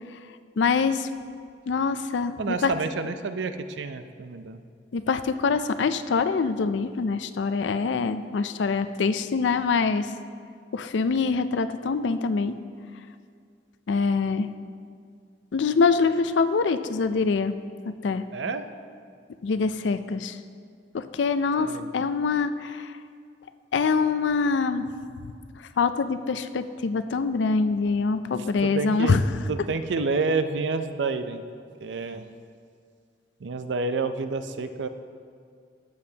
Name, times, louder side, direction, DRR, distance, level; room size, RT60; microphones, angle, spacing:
voice 1, 0.6-1.1 1.7-2.7 4.9-10.1 10.7-12.6 13.9-14.5 15.5-17.6 17.8-18.2 19.4-20.4 20.9-22.9 23.7-24.9 25.8-29.2, left 4 dB, 75° left, 11 dB, 0.4 m, -24 dB
voice 2, 2.4-4.6 18.3-18.7 21.6-21.9 28.6-29.2 29.5-31.4 31.8-32.3 33.4-34.9, right 4 dB, 75° right, 10 dB, 0.5 m, -29 dB
13.0 x 8.7 x 2.8 m, 2.2 s
head